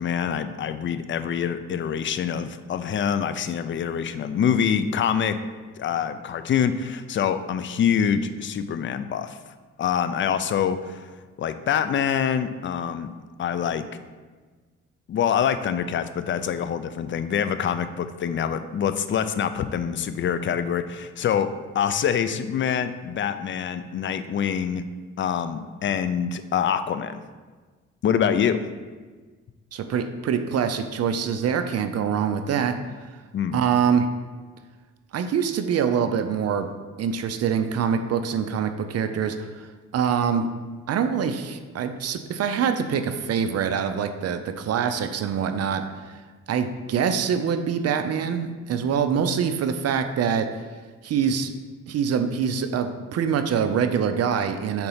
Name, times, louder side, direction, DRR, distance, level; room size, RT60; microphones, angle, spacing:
voice 1, 0.0-5.4 5.8-9.4 9.8-11.1 11.4-13.1 13.4-13.8 15.1-24.8 25.2-27.2 28.0-28.6 33.3-33.6, left 8 dB, 40° left, 11 dB, 0.4 m, -25 dB
voice 2, 29.7-32.8 33.5-34.1 35.1-36.7 37.0-39.7 39.9-40.5 40.9-45.8 46.5-50.5 51.0-51.5 51.9-54.9, right 7 dB, 55° right, 8 dB, 0.5 m, -24 dB
4.4 x 3.9 x 5.6 m, 1.4 s
cardioid pair, 90°, 30 cm